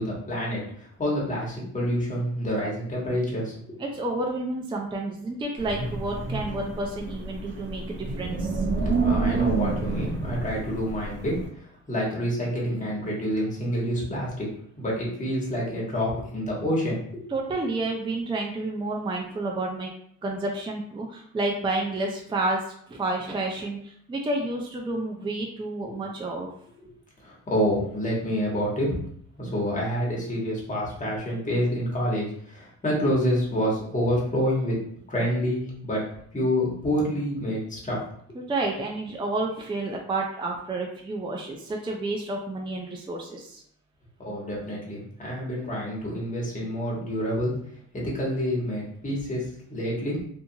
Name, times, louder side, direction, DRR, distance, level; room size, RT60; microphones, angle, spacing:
voice 1, 0.0-3.8 8.8-11.4 11.9-14.5 14.8-17.2 25.8-25.9 27.2-29.0 29.4-34.7 35.1-36.0 36.3-38.0 44.2-47.5 47.9-50.2, equal, 25° left, -5 dB, 1.3 m, -28 dB
voice 2, 3.8-8.6 17.3-19.9 20.2-22.6 22.9-26.5 38.4-43.6, right 2 dB, 15° right, 0 dB, 0.4 m, -30 dB
Wind, 5.6-11.5, right 3 dB, 40° right, 0.8 m, -29 dB
2.6 x 2.4 x 2.7 m, 0.64 s
cardioid pair, 90°, 30 cm